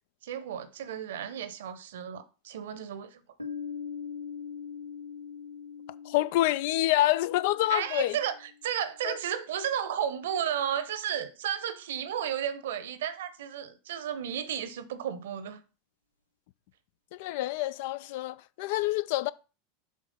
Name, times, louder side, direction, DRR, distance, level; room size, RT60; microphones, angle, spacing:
voice 1, 0.2-3.2 7.7-15.6, right 9 dB, 60° right, 0.8 m, -33 dB
Piano, 3.4-8.8, left 6 dB, 85° right, 1.0 m, -42 dB
voice 2, 6.0-8.2 9.0-9.2 17.1-19.3, left 15 dB, 55° left, 0.3 m, -27 dB
7.5 x 3.2 x 5.4 m
figure-of-eight pair, 85°, 0 cm